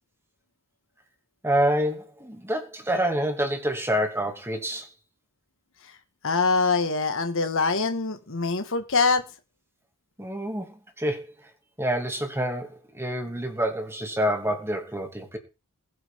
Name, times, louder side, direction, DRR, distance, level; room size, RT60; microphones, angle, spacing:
voice 1, 1.4-4.9 10.2-11.2 11.8-15.4, equal, 10° right, 2.5 m, -27 dB
voice 2, 6.2-9.2, left 4 dB, 65° left, 1.8 m, -24 dB
21.5 x 8.6 x 3.8 m
head